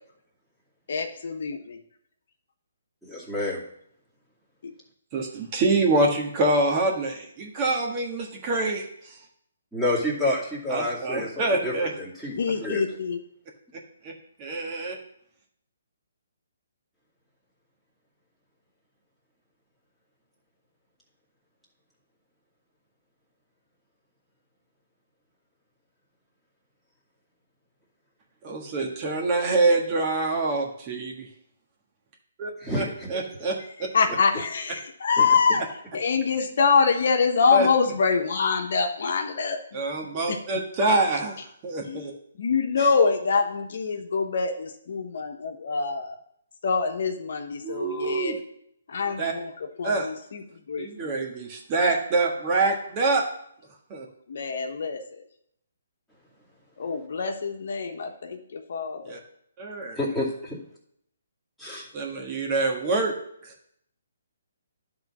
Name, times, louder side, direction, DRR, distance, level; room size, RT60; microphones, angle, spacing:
voice 1, 0.9-1.8 4.6-4.7 12.4-13.2 33.9-35.6 35.9-39.8 40.3-40.4 41.8-42.1 42.4-46.1 46.6-48.4 48.9-51.1 54.3-55.2 56.8-59.1, left 5 dB, 60° left, 4 dB, 1.1 m, -25 dB
voice 2, 3.0-3.6 9.7-12.8 32.6-33.1 35.2-35.3 42.8-42.9 59.9-60.6 61.6-61.9, left 1 dB, ahead, -8 dB, 2.3 m, -29 dB
voice 3, 5.1-9.2 10.7-11.9 14.0-14.1 14.4-15.0 28.4-31.3 32.4-33.6 37.5-37.7 39.7-41.4 41.6-42.1 47.6-48.4 49.2-49.3 49.8-50.1 50.8-53.3 53.9-54.1 59.1-59.2 59.6-60.0 61.9-63.1 63.4-63.5, right 2 dB, 30° right, 0 dB, 1.6 m, -25 dB
10.5 x 3.9 x 6.1 m, 0.71 s
hypercardioid pair, 150°, 0 cm